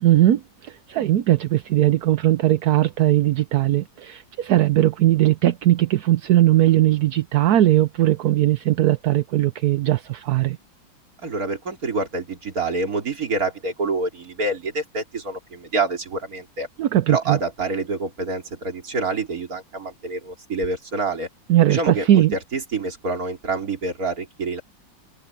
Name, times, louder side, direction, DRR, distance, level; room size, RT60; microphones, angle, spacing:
voice 1, 0.0-10.6 16.8-17.4 21.5-22.4, right 14 dB, 65° right, 1.1 m, -19 dB
voice 2, 11.2-16.7 17.1-21.3 21.7-24.6, right 3 dB, 45° right, 3.4 m, -27 dB
open air
omnidirectional pair, 2.1 m